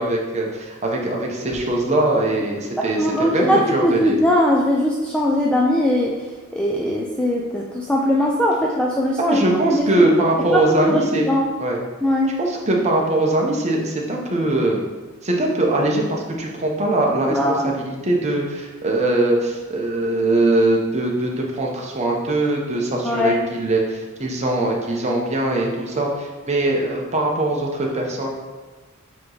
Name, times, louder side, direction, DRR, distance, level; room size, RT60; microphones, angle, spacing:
voice 1, 0.0-4.2 9.3-11.3 11.6-11.8 12.4-14.8 15.2-28.3, right 2 dB, 30° right, -1 dB, 0.9 m, -21 dB
voice 2, 3.0-6.2 6.5-9.4 9.7-10.1 10.5-11.5 12.0-12.4 17.3-17.7 23.0-23.4 25.0-25.2, left 1 dB, 5° left, -2 dB, 0.4 m, -20 dB
8.2 x 3.1 x 3.9 m, 1.3 s
head